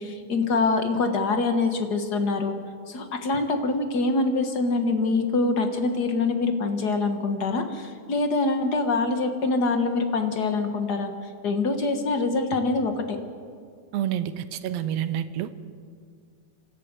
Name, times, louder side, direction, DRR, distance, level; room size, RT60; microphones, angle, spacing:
voice 1, 0.0-2.5 2.9-11.1 11.4-13.0, left 3 dB, 50° left, 6 dB, 1.3 m, -24 dB
voice 2, 13.9-15.5, right 11 dB, 70° right, 12 dB, 1.7 m, -28 dB
26.0 x 13.5 x 8.1 m, 2.1 s
omnidirectional pair, 3.6 m